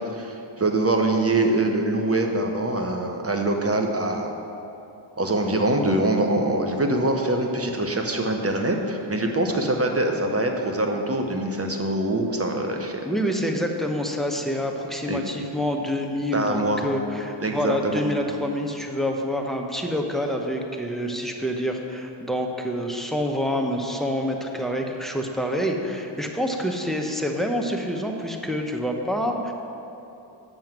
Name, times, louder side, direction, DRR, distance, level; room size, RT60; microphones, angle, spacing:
voice 1, 0.1-4.3 5.2-13.1 15.1-15.2 16.3-16.9 17.4-18.0, right 2 dB, 30° right, 3 dB, 1.0 m, -24 dB
voice 2, 13.0-29.5, equal, ahead, 2 dB, 0.9 m, -27 dB
7.7 x 6.4 x 6.0 m, 2.9 s
cardioid pair, 50°, 49 cm